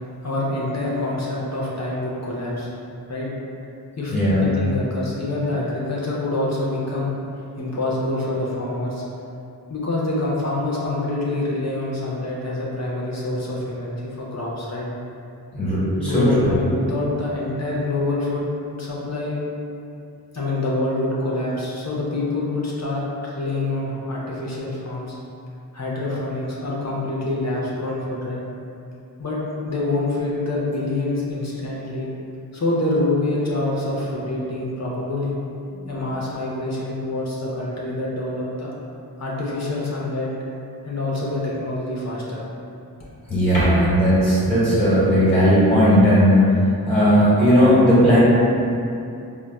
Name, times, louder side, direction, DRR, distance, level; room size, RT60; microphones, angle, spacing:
voice 1, 0.2-2.7 3.1-3.3 4.0-7.1 7.6-9.0 9.7-14.9 16.0-18.4 18.8-19.4 20.3-25.2 25.7-28.4 29.2-32.1 32.5-35.4 35.9-38.7 39.2-40.3 40.8-42.4, left 2 dB, 45° left, -5 dB, 0.6 m, -26 dB
voice 2, 4.1-4.4 15.5-16.5 35.7-35.9 43.3-48.2, equal, 15° left, -12 dB, 1.1 m, -17 dB
4.0 x 2.2 x 2.2 m, 2.6 s
wide cardioid pair, 45°, 39 cm